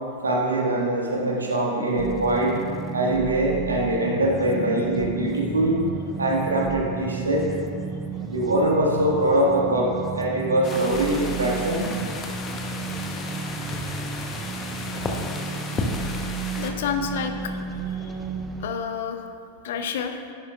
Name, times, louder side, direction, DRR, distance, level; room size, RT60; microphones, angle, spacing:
voice 1, 0.2-2.6 2.9-5.7 6.2-7.4 8.3-11.9, right 1 dB, 75° right, -2 dB, 1.6 m, -23 dB
sound 1, 2.0-18.7, right 4 dB, 15° right, 0.6 m, -33 dB
sound 2, 10.6-16.7, left 3 dB, 25° left, 1.0 m, -33 dB
voice 2, 16.6-17.6 17.9-18.1 18.6-19.3 19.6-20.2, left 7 dB, 55° left, 7 dB, 0.6 m, -29 dB
10.5 x 10.0 x 2.4 m, 2.3 s
figure-of-eight pair, 90°, 0 cm